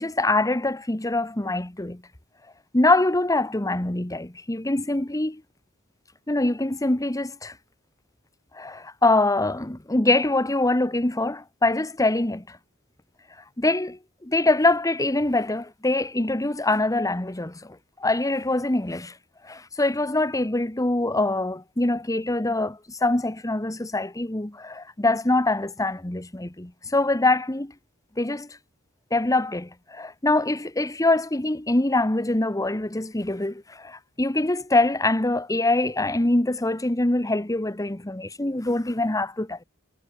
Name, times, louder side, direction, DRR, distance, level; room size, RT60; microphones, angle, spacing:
voice 1, 0.0-2.0 2.7-5.4 6.3-7.5 8.5-12.6 13.6-19.1 19.4-27.7 28.2-28.5 29.1-39.6, left 2 dB, 15° left, 1.2 m, -24 dB
head